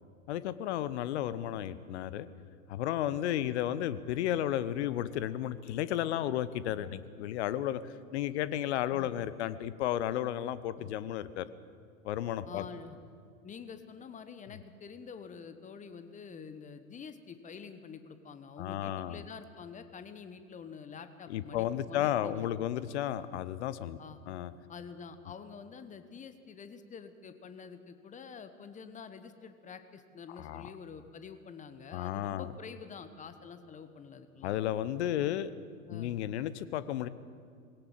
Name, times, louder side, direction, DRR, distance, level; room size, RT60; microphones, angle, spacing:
voice 1, 0.3-2.3 2.7-11.4 12.0-12.6 18.6-19.2 21.3-24.0 24.3-24.5 30.4-30.7 31.9-32.5 34.4-35.5 35.9-37.1, left 12 dB, 50° left, 15 dB, 1.1 m, -33 dB
voice 2, 12.5-13.0 13.4-22.5 22.8-22.9 24.0-24.2 24.7-34.6 35.9-36.2, left 6 dB, 15° left, 10 dB, 1.2 m, -47 dB
21.0 x 17.5 x 7.5 m, 2.4 s
figure-of-eight pair, 95°, 43 cm